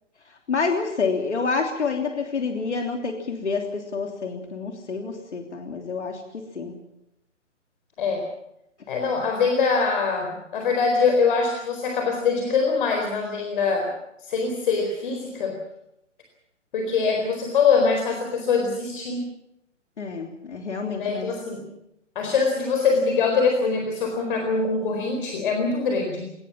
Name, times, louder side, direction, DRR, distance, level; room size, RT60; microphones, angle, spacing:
voice 1, 0.5-6.7 20.0-21.3, left 4 dB, 65° left, 3 dB, 3.3 m, -28 dB
voice 2, 8.9-15.6 16.7-19.3 21.0-21.7 22.1-26.3, left 4 dB, 45° left, 4 dB, 4.4 m, -23 dB
21.5 x 19.5 x 7.4 m, 0.81 s
figure-of-eight pair, 140°, 37 cm